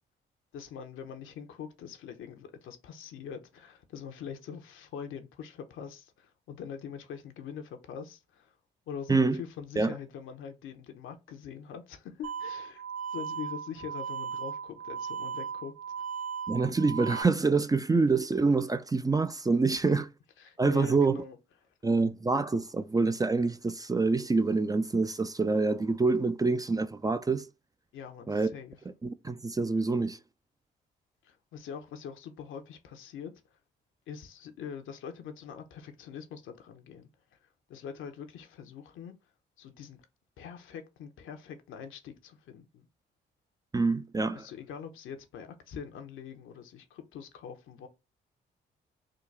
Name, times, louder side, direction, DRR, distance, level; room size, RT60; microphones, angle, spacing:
voice 1, 0.5-8.5 8.9-12.8 13.1-15.7 19.8-20.0 20.4-21.4 27.9-28.8 31.2-33.3 34.1-37.1 37.7-39.1 39.6-40.0 40.4-42.9 44.3-47.9, left 7 dB, 75° left, 0.7 m, -43 dB
voice 2, 9.1-9.4 9.8-9.9 16.5-20.0 20.6-21.2 21.8-27.5 28.3-28.5 29.2-30.2 43.7-44.5, right 3 dB, 20° right, 0.4 m, -26 dB
sound 1, 12.2-17.2, right 6 dB, 55° right, 0.9 m, -37 dB
3.8 x 2.3 x 3.2 m
supercardioid pair, 55°, 21 cm